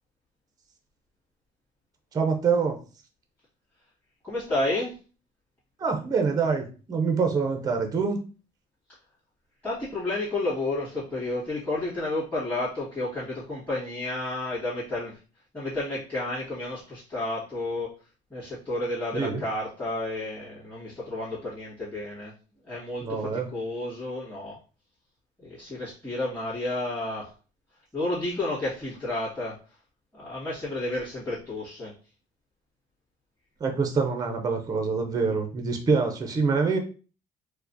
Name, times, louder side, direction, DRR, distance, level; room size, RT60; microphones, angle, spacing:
voice 1, 2.1-2.8 5.8-8.2 19.1-19.4 23.0-23.5 33.6-36.8, right 5 dB, 20° right, 5 dB, 0.5 m, -25 dB
voice 2, 4.2-5.0 9.6-15.2 15.5-17.9 18.3-22.3 22.6-24.6 25.4-27.3 27.9-29.6 30.1-31.9, left 2 dB, 10° left, -12 dB, 1.6 m, -31 dB
4.7 x 2.1 x 2.6 m, 0.36 s
cardioid pair, 165°, 17 cm